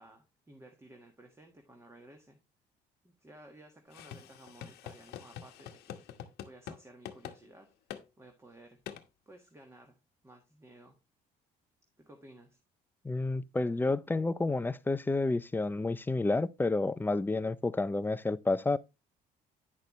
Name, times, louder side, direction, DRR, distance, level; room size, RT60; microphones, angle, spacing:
voice 1, 0.0-2.4 3.0-6.1 6.4-7.7 8.2-8.8 9.2-10.0 10.2-11.0 12.0-12.6, right 1 dB, 15° right, 1.6 m, -55 dB
sound 1, 3.9-6.8 7.0-7.4 7.9-8.0 8.9-9.0, left 10 dB, 75° left, 1.1 m, -45 dB
voice 2, 13.0-18.8, left 2 dB, 10° left, 0.5 m, -30 dB
9.7 x 6.5 x 3.1 m
cardioid pair, 110°, 17 cm